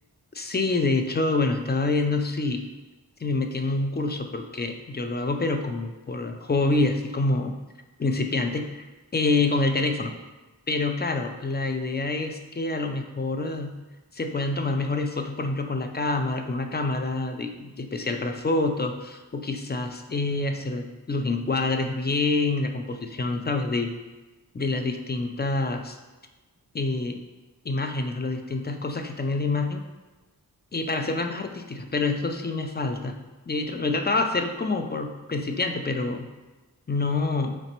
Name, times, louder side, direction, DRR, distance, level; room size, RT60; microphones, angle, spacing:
voice 1, 0.3-2.6 3.2-7.6 8.0-8.8 9.1-10.1 10.7-13.8 14.1-23.9 24.5-26.0 26.7-27.2 27.6-29.8 30.7-33.2 33.5-36.3 36.9-37.6, left 3 dB, 25° left, 5 dB, 0.3 m, -27 dB
4.1 x 3.1 x 2.9 m, 1.2 s
cardioid pair, 50°, 41 cm